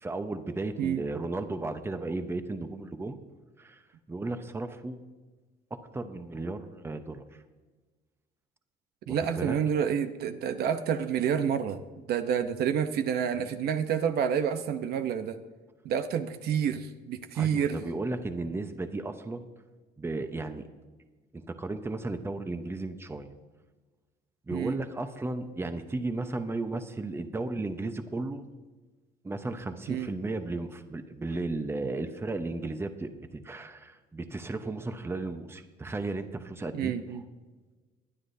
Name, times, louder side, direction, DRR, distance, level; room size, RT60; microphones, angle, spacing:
voice 1, 0.0-3.2 3.6-3.8 4.1-5.0 5.7-7.4 9.1-9.6 17.3-19.5 20.0-20.7 21.3-23.3 24.5-28.4 29.2-36.9, right 2 dB, 15° right, 8 dB, 0.9 m, -34 dB
voice 2, 9.1-11.8 12.1-15.4 15.8-17.9 24.5-24.8 29.9-30.1 36.7-37.2, right 8 dB, 70° right, 9 dB, 0.8 m, -29 dB
22.5 x 9.6 x 2.7 m, 1.3 s
cardioid pair, 110°, 17 cm